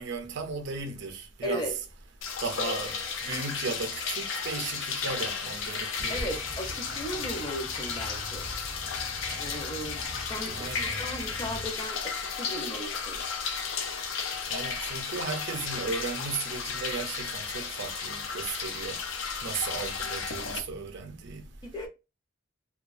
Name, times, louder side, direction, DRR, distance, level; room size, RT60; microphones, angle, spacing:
voice 1, 0.0-1.7 2.4-6.3 10.5-11.0 14.5-19.0 19.4-21.5, right 4 dB, 60° right, 0.4 m, -36 dB
voice 2, 1.4-1.7 6.1-8.5 9.4-13.2 21.6-21.9, equal, 20° left, 0.6 m, -37 dB
sound 1, 2.2-20.6, left 5 dB, 75° left, 0.4 m, -34 dB
sound 2, 6.0-11.7, left 1 dB, 45° left, 1.1 m, -42 dB
2.4 x 2.2 x 2.4 m
head